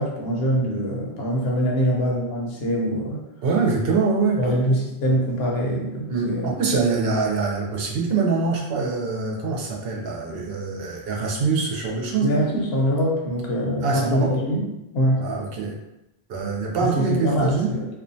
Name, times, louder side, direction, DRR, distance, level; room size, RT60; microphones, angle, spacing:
voice 1, 0.0-3.3 4.4-6.5 12.2-14.7 14.9-15.3 16.8-17.9, equal, 75° left, -2 dB, 0.9 m, -23 dB
voice 2, 3.4-4.4 6.1-12.5 13.8-14.4 15.2-15.8 16.3-17.7, right 4 dB, 75° right, -1 dB, 0.8 m, -24 dB
2.4 x 2.1 x 2.6 m, 0.90 s
omnidirectional pair, 1.0 m